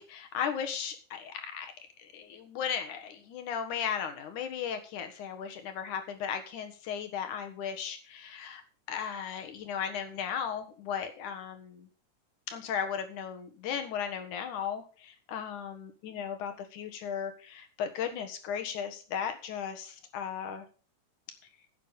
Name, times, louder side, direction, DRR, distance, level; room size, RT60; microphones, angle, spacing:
voice 1, 0.0-1.7 2.0-8.6 8.9-11.9 12.5-20.7, left 8 dB, 80° left, 7 dB, 3.0 m, -36 dB
10.5 x 9.1 x 5.3 m, 0.38 s
omnidirectional pair, 3.5 m